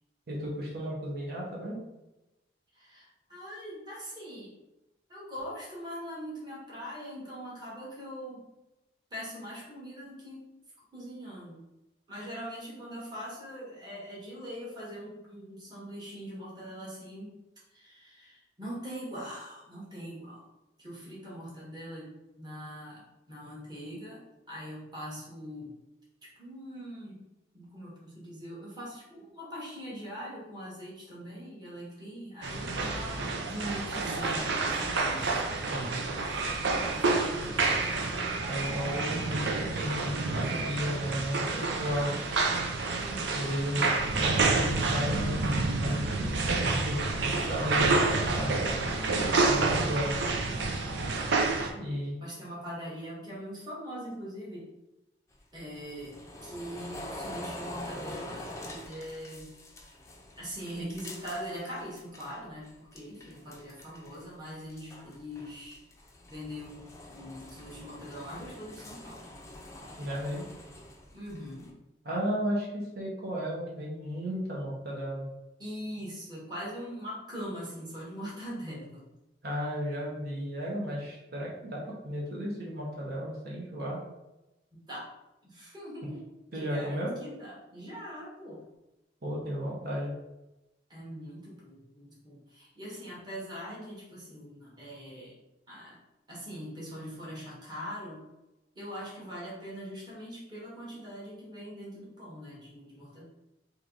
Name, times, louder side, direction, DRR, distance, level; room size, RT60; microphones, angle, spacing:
voice 1, 0.3-1.8 35.7-36.2 38.5-42.1 43.3-46.2 46.8-48.5 49.5-50.1 51.7-52.2 70.0-70.5 72.0-75.3 79.4-84.0 86.5-87.1 89.2-90.1, equal, 60° right, -5 dB, 1.3 m, -34 dB
voice 2, 2.7-4.5 5.1-8.4 9.1-10.4 10.9-11.6 12.1-17.3 17.7-20.4 20.8-22.1 22.4-24.2 24.5-25.7 26.2-27.2 27.5-35.5 36.2-38.1 43.0-43.5 52.2-54.7 55.5-59.5 60.4-65.8 66.3-69.2 71.1-71.7 75.6-79.0 84.7-85.1 85.4-86.2 86.5-88.6 90.9-95.3 95.7-96.0 96.3-98.2 98.7-103.2, equal, 25° right, -7 dB, 1.5 m, -42 dB
sound 1, 32.4-51.7, right 3 dB, 80° right, 0.6 m, -29 dB
sound 2, 55.3-62.4 62.6-64.3 64.6-71.7, left 1 dB, 15° left, 0.5 m, -45 dB
3.3 x 3.0 x 3.9 m, 0.96 s
head